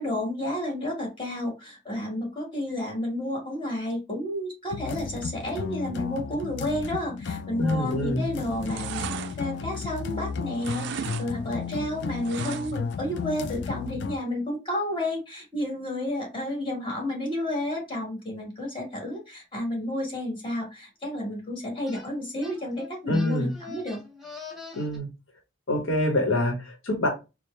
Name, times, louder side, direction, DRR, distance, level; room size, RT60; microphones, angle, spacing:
voice 1, 0.0-9.1 9.4-24.0, left 1 dB, 25° left, 0 dB, 1.6 m, -31 dB
sound 1, 4.7-14.2, left 5 dB, 60° left, 0.3 m, -34 dB
voice 2, 7.6-8.3 23.1-23.5 24.7-25.1 25.7-27.1, left 1 dB, 75° left, 2 dB, 0.9 m, -25 dB
sound 2, 7.8-8.2 8.5-10.2 10.5-11.3 11.5-12.9 13.3-13.4, right 8 dB, 60° right, 0.3 m, -37 dB
sound 3, 21.9-22.1 22.4-25.0, left 4 dB, ahead, 0.8 m, -44 dB
4.5 x 2.0 x 3.2 m, 0.27 s
head